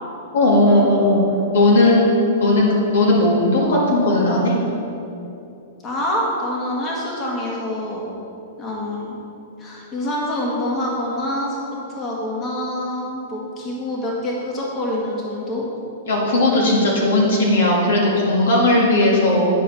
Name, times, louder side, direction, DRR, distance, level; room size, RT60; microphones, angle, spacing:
voice 1, 0.3-1.2 1.5-2.1 2.4-4.5 16.1-19.5, left 2 dB, 75° left, -3 dB, 1.9 m, -16 dB
voice 2, 5.8-8.1 8.6-9.2 9.6-11.6 11.9-15.6, left 1 dB, 30° left, -4 dB, 1.6 m, -26 dB
10.0 x 5.0 x 4.2 m, 2.8 s
hypercardioid pair, 120°, 0 cm